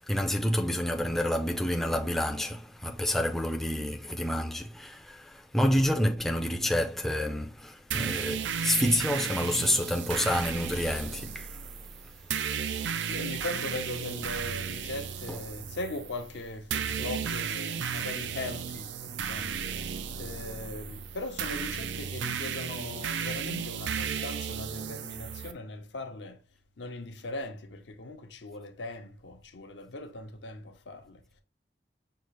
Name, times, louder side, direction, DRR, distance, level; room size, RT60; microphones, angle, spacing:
voice 1, 0.1-11.6, left 1 dB, ahead, 0.4 m, -28 dB
sound 1, 7.9-25.5, right 7 dB, 85° right, 0.4 m, -34 dB
voice 2, 13.1-19.6 20.2-26.4 26.8-31.4, left 2 dB, 80° left, 0.7 m, -39 dB
5.7 x 2.4 x 3.2 m
head